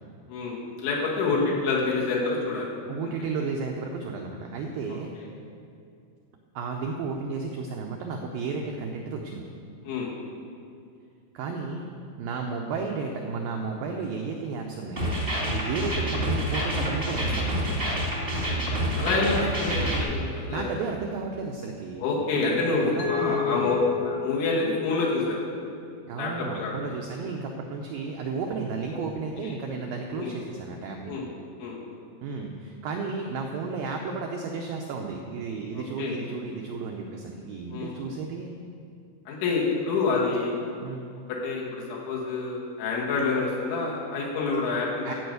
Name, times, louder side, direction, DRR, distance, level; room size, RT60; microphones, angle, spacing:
voice 1, 0.3-2.7 3.0-3.1 5.2-5.3 9.8-10.1 19.0-20.7 22.0-23.8 24.0-25.4 26.2-26.7 28.8-29.0 29.4-29.6 30.2-30.3 31.1-31.2 31.6-31.8 36.0-36.2 37.7-38.1 39.3-40.5 41.3-45.2, left 3 dB, 90° left, -4 dB, 4.5 m, -27 dB
voice 2, 2.9-5.1 6.6-9.5 11.3-11.9 12.2-18.1 20.3-23.7 26.0-31.2 32.2-38.6 40.8-41.1 45.0-45.1, right 4 dB, 85° right, 2 dB, 2.0 m, -33 dB
sound 1, 15.0-20.0, equal, 40° right, 0.7 m, -27 dB
Mallet percussion, 23.0-25.9, left 11 dB, 75° left, 1.9 m, -32 dB
15.5 x 5.4 x 7.9 m, 2.4 s
omnidirectional pair, 5.1 m